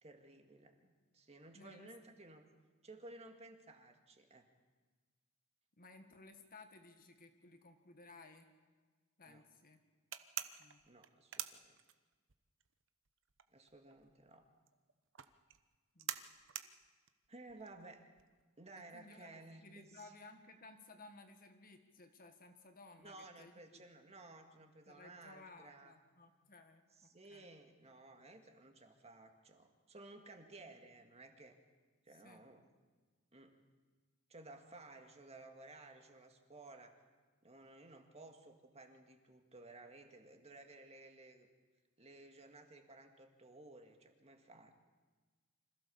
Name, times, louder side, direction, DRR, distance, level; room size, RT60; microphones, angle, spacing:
voice 1, 0.0-2.4 2.8-4.5 9.3-9.4 10.9-11.8 13.5-14.5 17.3-18.1 18.6-20.1 23.0-25.9 27.0-31.6 32.0-32.7 33.3-33.5 34.3-37.0 37.4-41.5 42.0-44.7, right 2 dB, 30° right, 4 dB, 1.9 m, -56 dB
voice 2, 1.5-1.9 5.8-8.5 9.2-9.8 10.6-10.8 15.9-16.2 18.9-23.8 24.9-27.5 32.2-32.4, left 3 dB, 40° left, 6 dB, 1.7 m, -58 dB
sound 1, 10.1-12.3 12.6-18.4, right 12 dB, 60° right, 1.0 m, -46 dB
26.0 x 15.5 x 7.0 m, 1.4 s
head